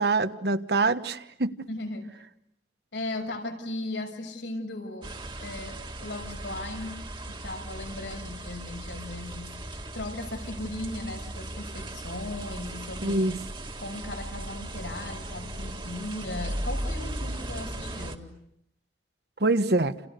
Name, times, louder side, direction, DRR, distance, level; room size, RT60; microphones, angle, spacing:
voice 1, 0.0-1.7 13.0-13.4 19.4-19.9, right 2 dB, 65° right, 10 dB, 1.3 m, -25 dB
voice 2, 1.7-2.1 2.9-7.0 7.3-13.3 13.8-18.3, left 2 dB, 85° left, 3 dB, 6.6 m, -37 dB
sound 1, 5.0-18.2, right 1 dB, 25° right, 1.9 m, -37 dB
29.5 x 29.5 x 6.8 m, 0.78 s
head